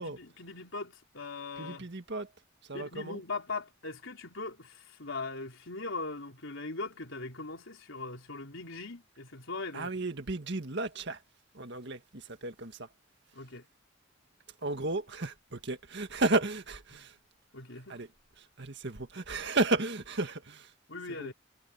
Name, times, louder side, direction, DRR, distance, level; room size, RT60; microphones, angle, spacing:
voice 1, 0.0-1.9 2.7-9.9 13.3-13.6 17.5-18.0 20.9-21.3, left 3 dB, 75° left, 4.0 m, -40 dB
voice 2, 1.6-2.3 2.7-3.2 9.7-11.2 11.5-12.9 14.6-17.1 17.9-18.1 18.6-20.7 21.2-21.3, right 2 dB, 60° right, 1.9 m, -33 dB
head